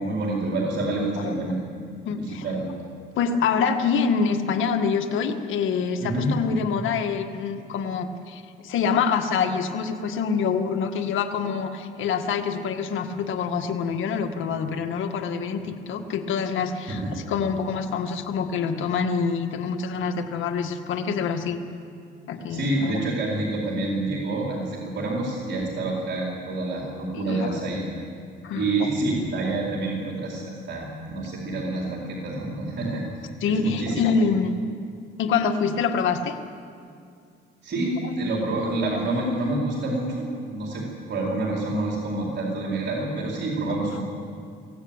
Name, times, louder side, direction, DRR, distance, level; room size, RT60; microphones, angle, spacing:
voice 1, 0.0-1.6 2.2-2.7 6.0-6.3 16.9-17.1 22.5-27.8 28.5-33.0 33.5-34.0 37.6-44.0, right 2 dB, 60° right, -3 dB, 4.5 m, -27 dB
voice 2, 2.1-2.4 3.2-17.0 17.3-21.6 22.3-22.9 27.3-27.6 28.4-28.9 33.4-34.6 35.2-36.4, left 6 dB, 80° left, 5 dB, 1.9 m, -26 dB
23.0 x 16.5 x 9.0 m, 2.3 s
cardioid pair, 90°, 20 cm